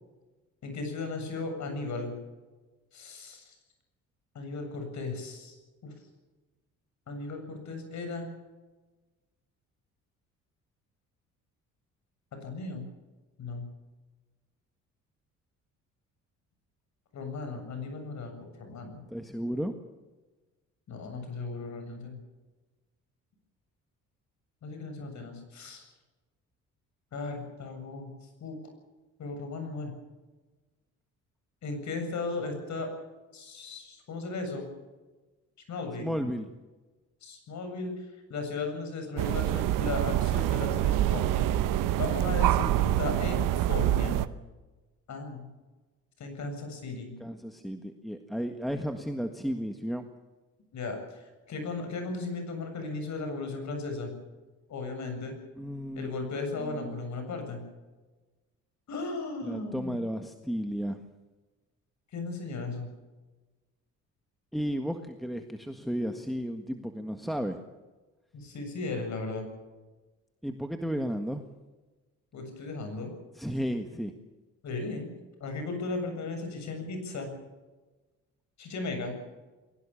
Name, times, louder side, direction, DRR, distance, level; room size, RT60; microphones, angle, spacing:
voice 1, 0.6-2.1 2.9-3.4 4.3-5.5 5.8-5.9 7.1-8.3 12.4-12.9 13.4-13.7 17.1-19.0 20.9-22.2 24.6-25.9 27.1-28.1 28.4-28.6 29.2-29.9 31.6-32.9 33.3-34.7 35.7-36.1 37.2-38.0 38.3-44.2 45.1-45.5 46.2-47.1 50.7-51.2 51.5-54.1 54.7-55.4 56.0-57.6 58.9-60.0 62.1-62.9 68.3-69.5 72.3-73.1 74.6-75.1 75.4-77.3 78.6-79.1, left 3 dB, 60° left, 5 dB, 7.5 m, -36 dB
voice 2, 19.1-19.7 36.0-36.4 47.2-50.0 55.6-56.2 56.6-57.0 59.4-61.0 64.5-67.6 70.4-71.4 73.4-74.1, equal, ahead, 6 dB, 1.7 m, -33 dB
sound 1, 39.2-44.3, right 13 dB, 85° right, 1.0 m, -26 dB
22.0 x 18.5 x 7.3 m, 1.2 s
cardioid pair, 90°, 31 cm